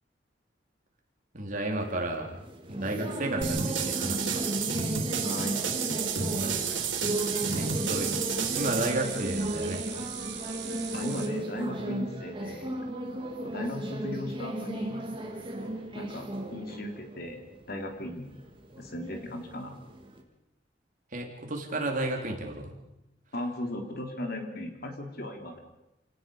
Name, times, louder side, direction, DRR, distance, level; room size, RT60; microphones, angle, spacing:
voice 1, 1.3-2.4 2.7-4.6 7.5-8.2 8.5-9.8 21.1-22.7, right 2 dB, 45° right, 1 dB, 3.8 m, -32 dB
sound 1, 1.8-20.2, right 1 dB, 25° right, 3.0 m, -35 dB
sound 2, 3.4-8.9, right 6 dB, 85° right, 4.1 m, -31 dB
voice 2, 5.2-5.6 10.9-12.7 13.4-15.0 15.9-17.4 17.7-18.2 18.8-19.8 23.3-25.6, left 1 dB, 55° left, 4 dB, 3.4 m, -36 dB
sound 3, 6.0-11.3, right 9 dB, 60° right, 3.4 m, -40 dB
28.5 x 18.5 x 5.5 m, 0.89 s
head